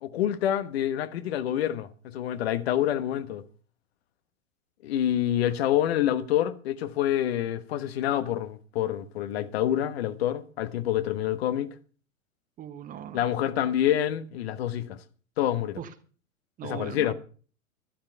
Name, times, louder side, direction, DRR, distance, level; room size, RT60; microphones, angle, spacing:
voice 1, 0.0-3.4 4.8-11.8 13.1-15.0 15.4-15.8 16.6-17.1, left 11 dB, 45° left, 1.3 m, -27 dB
voice 2, 12.6-13.7 15.8-15.9 16.6-17.1, right 9 dB, 20° right, 1.0 m, -40 dB
12.0 x 11.5 x 5.7 m
figure-of-eight pair, 105°, 41 cm